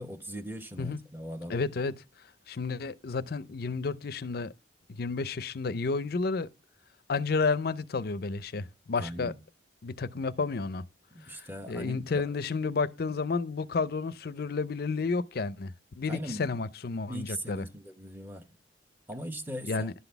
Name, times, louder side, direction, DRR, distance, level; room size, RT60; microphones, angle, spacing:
voice 1, 0.0-1.6 9.0-9.3 11.1-12.2 16.0-16.6 17.1-18.5 19.1-19.9, equal, 10° right, 0.9 m, -39 dB
voice 2, 1.5-1.9 2.5-4.5 4.9-6.5 7.1-9.3 9.8-10.8 11.2-17.7 19.7-19.9, left 4 dB, 55° left, 0.5 m, -31 dB
11.0 x 4.0 x 6.9 m
head